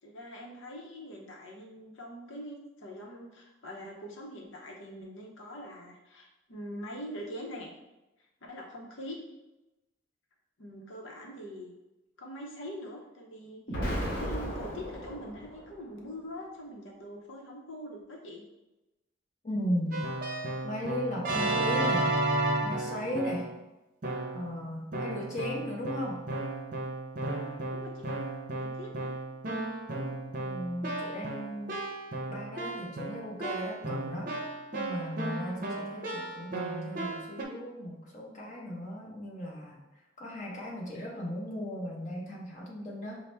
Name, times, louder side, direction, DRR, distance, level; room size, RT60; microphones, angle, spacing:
voice 1, 0.0-7.7 8.5-9.2 10.6-11.7 12.2-18.4 27.7-28.2 28.6-29.2, equal, 75° left, -1 dB, 0.8 m, -43 dB
Explosion, 13.7-15.8, equal, 60° left, 1.1 m, -35 dB
voice 2, 19.4-20.0 20.6-22.1 22.6-23.5 24.3-26.2 30.4-31.8 32.3-39.8 40.2-43.2, left 1 dB, 40° left, -3 dB, 0.9 m, -36 dB
Keyboard (musical), 19.9-23.6 24.0-24.5 24.9-37.4, right 2 dB, 45° right, 0.6 m, -34 dB
5.5 x 2.1 x 3.3 m, 1.0 s
head